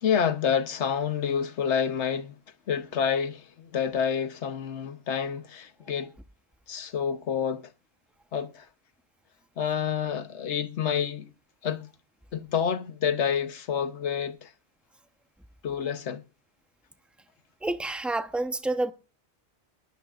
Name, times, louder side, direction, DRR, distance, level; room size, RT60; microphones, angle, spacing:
voice 1, 0.0-2.4 2.7-6.1 6.7-7.7 8.3-8.7 9.6-11.3 11.6-11.9 12.3-14.5 15.6-16.2, left 7 dB, 80° left, 1.2 m, -28 dB
voice 2, 17.6-18.9, right 2 dB, ahead, 0.8 m, -28 dB
19.0 x 13.0 x 2.5 m
omnidirectional pair, 1.1 m